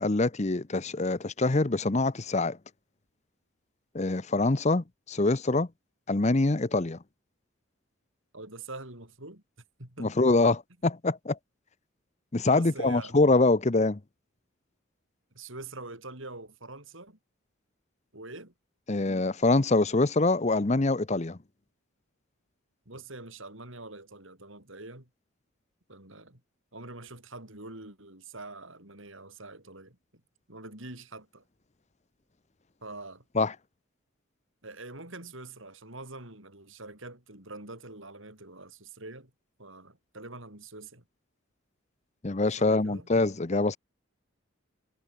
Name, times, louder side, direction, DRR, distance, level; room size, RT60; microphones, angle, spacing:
voice 1, 0.0-2.6 3.9-5.7 6.1-7.0 10.0-11.4 12.3-14.0 18.9-21.4 33.3-33.5 42.2-43.8, left 2 dB, 30° left, 0.8 m, -25 dB
voice 2, 8.3-9.4 9.8-10.1 12.4-13.1 15.3-17.2 18.1-18.5 22.9-25.1 25.9-26.4 26.7-30.0 30.5-31.4 32.8-33.2 34.6-39.3 39.6-41.0 42.6-43.1, right 2 dB, 65° right, 6.2 m, -44 dB
head